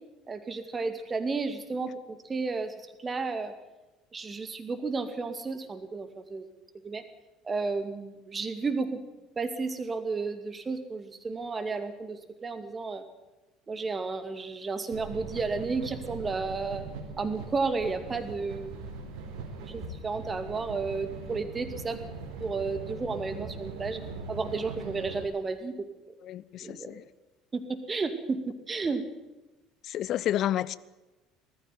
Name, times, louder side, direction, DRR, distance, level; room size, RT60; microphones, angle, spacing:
voice 1, 0.3-3.5 4.1-6.5 6.8-7.0 7.4-9.0 9.4-13.0 13.7-16.8 17.2-18.7 19.7-22.0 22.4-24.0 24.3-25.9 26.6-26.9 27.5-29.0, right 4 dB, 25° right, 2.4 m, -32 dB
sound 1, 14.9-25.2, right 4 dB, 60° right, 4.1 m, -41 dB
voice 2, 26.2-27.0 29.8-30.8, left 12 dB, 45° left, 0.7 m, -30 dB
19.5 x 14.0 x 9.5 m
figure-of-eight pair, 60°, 0 cm